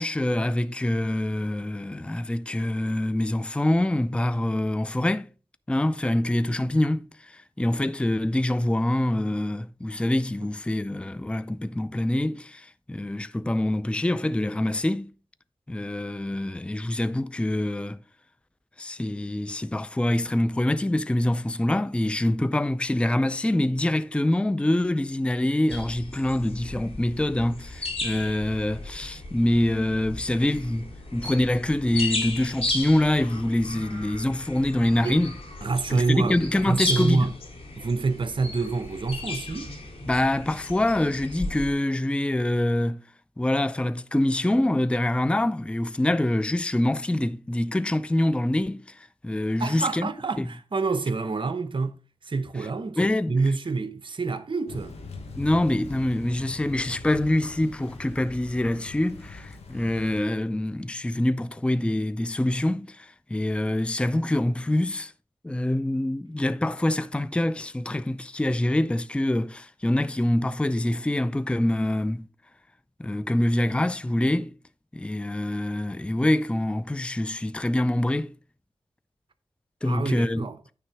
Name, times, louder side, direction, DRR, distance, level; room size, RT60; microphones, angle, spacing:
voice 1, 0.0-5.3 5.7-15.1 15.7-18.0 18.8-35.3 35.9-37.3 40.1-43.0 43.4-50.1 50.4-50.5 53.0-53.4 55.4-65.1 65.4-72.3 73.0-74.5 74.9-78.3 79.8-80.5, left 1 dB, 10° left, 0.4 m, -25 dB
sound 1, 25.7-41.7, left 2 dB, 70° left, 2.5 m, -35 dB
voice 2, 35.6-37.3 37.8-39.7 49.6-52.0 52.2-55.0 79.8-80.6, right 4 dB, 50° right, 0.7 m, -27 dB
Thunder / Rain, 54.7-60.2, left 3 dB, 90° left, 1.2 m, -42 dB
9.3 x 3.5 x 4.7 m
cardioid pair, 40°, 11 cm